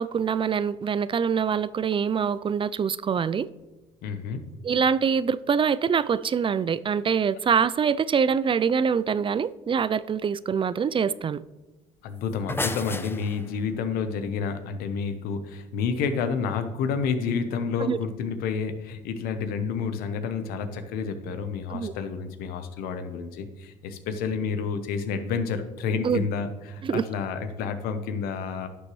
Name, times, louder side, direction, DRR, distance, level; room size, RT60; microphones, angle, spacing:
voice 1, 0.0-3.5 4.6-11.4 17.8-18.0 21.7-21.9 26.0-26.3 26.8-27.0, right 6 dB, 35° right, 0.4 m, -24 dB
voice 2, 4.0-4.4 12.0-28.7, left 5 dB, 80° left, 0.9 m, -29 dB
sound 1, 12.2-13.7, left 2 dB, 15° left, 0.7 m, -32 dB
11.0 x 6.8 x 3.1 m
supercardioid pair, 65°, 15 cm